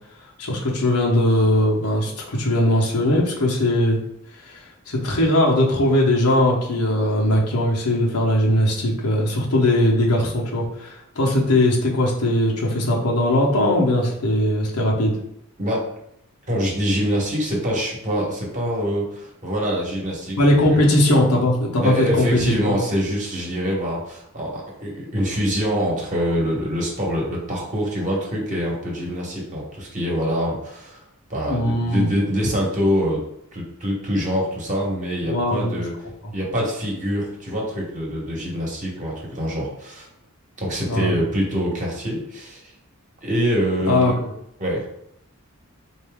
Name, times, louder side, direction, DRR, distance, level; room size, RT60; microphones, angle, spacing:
voice 1, 0.4-4.0 4.4-15.1 20.4-22.8 31.5-32.1 35.2-35.8 40.9-41.1 43.9-44.3, left 1 dB, 85° left, -2 dB, 1.0 m, -20 dB
voice 2, 15.6-15.9 16.5-20.8 21.8-31.0 31.3-33.2 33.5-35.9 36.3-40.1 40.6-42.6 43.2-44.1 44.6-44.9, equal, 35° right, -2 dB, 1.1 m, -25 dB
4.2 x 2.7 x 3.5 m, 0.76 s
head